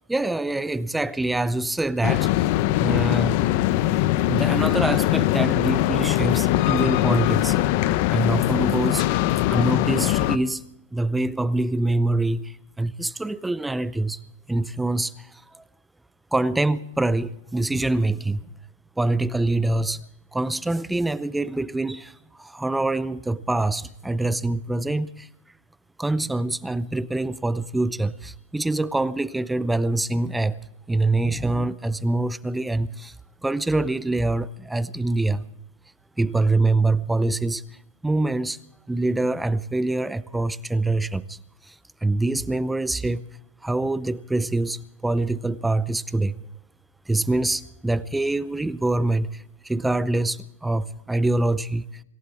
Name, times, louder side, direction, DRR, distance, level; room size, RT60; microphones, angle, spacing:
voice 1, 0.1-2.3 2.8-3.4 4.3-7.6 8.1-9.1 9.5-10.6 10.9-14.2 14.5-15.6 16.3-18.4 19.0-20.0 20.3-25.3 26.0-30.6 30.9-33.1 33.4-35.4 36.2-37.6 38.0-38.6 38.9-41.4 41.6-41.8 42.0-43.2 43.6-46.4 47.1-51.9, right 2 dB, 5° right, 0.6 m, -25 dB
sound 1, 2.0-10.4, left 15 dB, 50° left, 0.9 m, -21 dB
26.0 x 15.5 x 3.6 m
hypercardioid pair, 125°, 0 cm